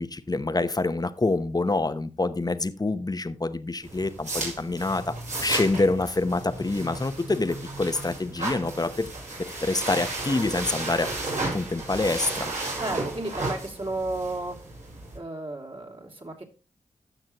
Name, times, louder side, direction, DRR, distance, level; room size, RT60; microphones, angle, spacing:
voice 1, 0.0-5.1 5.4-9.1 9.4-12.5, left 2 dB, 30° left, 12 dB, 0.9 m, -26 dB
sound 1, 3.8-15.2, right 2 dB, 65° right, 4.7 m, -34 dB
voice 2, 12.8-14.6 15.1-16.4, right 2 dB, 40° right, 1 dB, 2.9 m, -33 dB
15.0 x 6.1 x 3.0 m, 0.32 s
cardioid pair, 45°, 14 cm